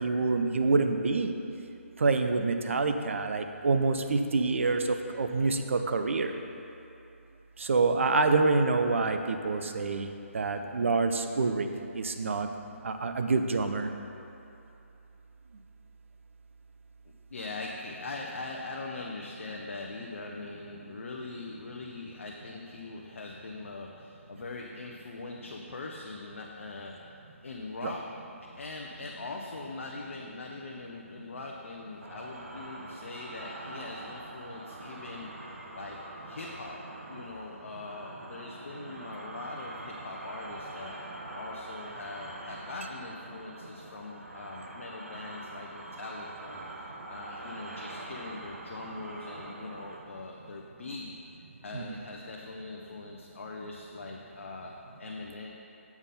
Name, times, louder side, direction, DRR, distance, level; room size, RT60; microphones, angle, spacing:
voice 1, 0.0-1.4 2.0-6.4 7.6-10.1 10.3-11.7 11.9-12.5 12.8-13.9 27.8-27.9 51.7-51.9, right 3 dB, 65° right, 7 dB, 0.5 m, -27 dB
voice 2, 17.3-27.2 27.4-28.1 28.6-36.8 37.1-41.0 41.3-51.1 51.6-55.5, left 3 dB, 65° left, -1 dB, 0.6 m, -42 dB
sound 1, 32.0-50.0, right 1 dB, 80° right, 0.9 m, -44 dB
7.0 x 5.2 x 4.2 m, 2.8 s
figure-of-eight pair, 145°, 8 cm